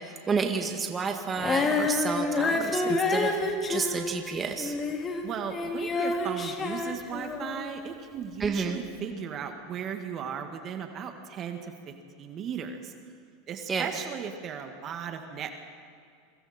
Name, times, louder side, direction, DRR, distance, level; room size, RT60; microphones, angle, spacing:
voice 1, 0.0-4.7 8.4-8.8 13.7-13.9, right 5 dB, 25° right, 4 dB, 1.9 m, -30 dB
Female singing, 1.4-7.7 8.4-8.5, left 3 dB, 25° left, 2.5 m, -28 dB
voice 2, 5.2-12.9 13.5-15.5, right 7 dB, 40° right, 5 dB, 1.9 m, -36 dB
27.5 x 23.5 x 4.4 m, 2.3 s
supercardioid pair, 115°, 0 cm